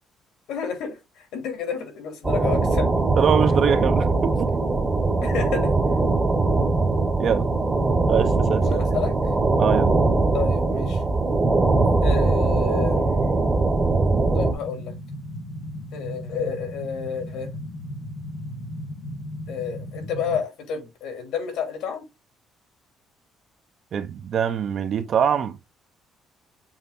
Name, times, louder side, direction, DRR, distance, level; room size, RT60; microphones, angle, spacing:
voice 1, 0.5-2.9 5.2-5.7 8.6-9.1 10.3-11.0 12.0-13.5 14.3-14.9 15.9-17.5 19.5-22.0, left 7 dB, 75° left, 2.9 m, -30 dB
sound 1, 2.2-14.5, right 3 dB, 15° right, 1.0 m, -21 dB
voice 2, 3.2-4.5 7.2-7.5 8.1-9.0 9.6-10.0 23.9-25.6, right 8 dB, 40° right, 0.7 m, -23 dB
sound 2, 14.4-20.4, left 1 dB, 50° left, 1.5 m, -36 dB
7.4 x 3.4 x 4.0 m
cardioid pair, 165°, 0 cm